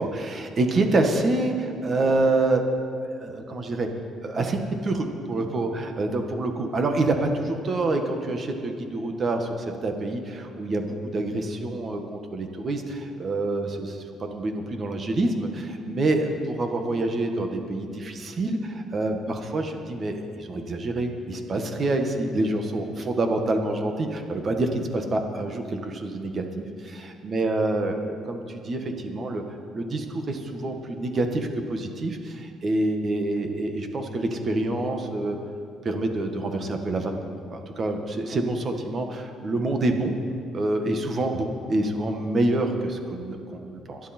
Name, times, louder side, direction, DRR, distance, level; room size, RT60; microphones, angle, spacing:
voice 1, 0.0-2.6 3.1-3.9 4.2-9.5 9.8-14.0 14.3-29.4 29.7-35.4 35.8-37.1 37.5-40.1 40.5-44.0, right 2 dB, 35° right, 4 dB, 1.6 m, -27 dB
25.0 x 10.5 x 4.4 m, 2.4 s
cardioid pair, 130°, 0 cm